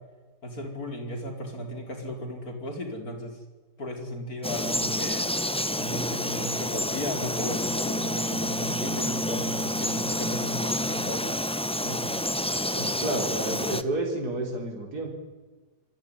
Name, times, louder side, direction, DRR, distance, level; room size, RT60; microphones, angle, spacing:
voice 1, 0.4-3.4 3.8-5.3 5.7-11.2 11.8-12.1, left 1 dB, 55° left, 4 dB, 5.0 m, -35 dB
Frog, 4.4-13.8, left 1 dB, 10° left, 0.4 m, -29 dB
voice 2, 12.7-15.1, right 2 dB, 60° right, 1 dB, 4.7 m, -30 dB
26.5 x 22.0 x 10.0 m, 1.3 s
omnidirectional pair, 1.9 m